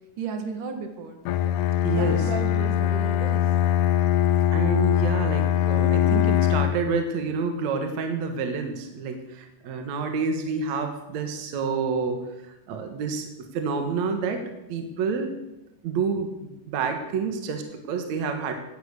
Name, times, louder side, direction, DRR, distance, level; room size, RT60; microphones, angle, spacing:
voice 1, 0.2-1.2 1.9-3.5, right 5 dB, 80° right, 5 dB, 3.4 m, -34 dB
Bowed string instrument, 1.3-6.9, left 11 dB, 80° left, 2.1 m, -22 dB
voice 2, 1.8-2.2 4.5-12.2 12.7-14.4 14.7-15.3 15.8-18.5, right 5 dB, 65° right, 5 dB, 2.7 m, -28 dB
17.0 x 10.5 x 6.8 m, 0.94 s
omnidirectional pair, 3.6 m